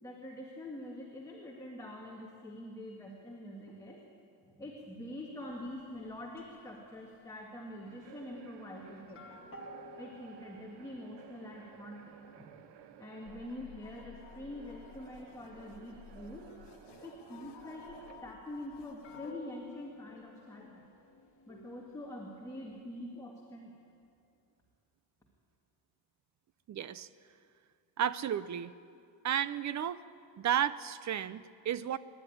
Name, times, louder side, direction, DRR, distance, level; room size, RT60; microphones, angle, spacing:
voice 1, 0.0-4.0 4.5-9.4 10.0-12.6 13.0-16.5 17.0-20.8 21.5-23.7, left 1 dB, 10° left, -3 dB, 2.0 m, -45 dB
sound 1, 5.5-7.4 8.3-22.8, left 2 dB, 30° left, 2.3 m, -57 dB
sound 2, 7.8-18.3, right 9 dB, 80° right, 1.1 m, -56 dB
sound 3, 13.2-19.4, left 8 dB, 80° left, 1.2 m, -55 dB
voice 2, 26.7-27.1 28.0-28.7 29.2-30.0 30.4-32.0, right 9 dB, 45° right, 16 dB, 0.6 m, -33 dB
25.5 x 11.0 x 10.0 m, 2.4 s
cardioid pair, 175°, 41 cm